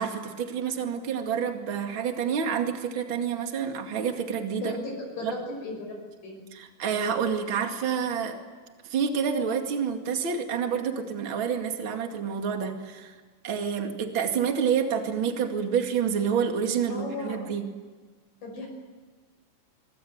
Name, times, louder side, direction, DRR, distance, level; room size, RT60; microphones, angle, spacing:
voice 1, 0.0-4.8 5.2-5.3 6.5-8.4 8.8-13.1 13.4-17.7, right 7 dB, 40° right, 4 dB, 2.7 m, -28 dB
voice 2, 4.6-5.9 6.2-6.4 16.9-17.4 18.4-18.7, left 2 dB, 80° left, 0 dB, 7.5 m, -35 dB
25.0 x 23.5 x 7.9 m, 1.4 s
omnidirectional pair, 3.7 m